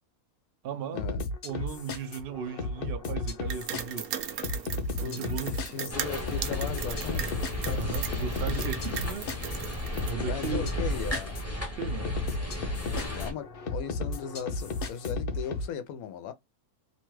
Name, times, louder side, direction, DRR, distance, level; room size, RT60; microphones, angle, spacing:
voice 1, 0.6-1.0 1.4-4.3 5.0-5.6 7.7-9.3 10.0-10.7 11.8-12.1, right 7 dB, 70° right, 0.6 m, -37 dB
sound 1, 1.0-15.7, left 3 dB, 55° left, 0.6 m, -34 dB
sound 2, 3.5-10.1, right 9 dB, 90° right, 1.1 m, -38 dB
voice 2, 4.9-7.4 10.3-11.5 12.8-16.3, left 8 dB, 90° left, 1.1 m, -38 dB
sound 3, 5.9-13.3, left 1 dB, 15° left, 0.6 m, -34 dB
2.9 x 2.2 x 3.0 m
omnidirectional pair, 1.5 m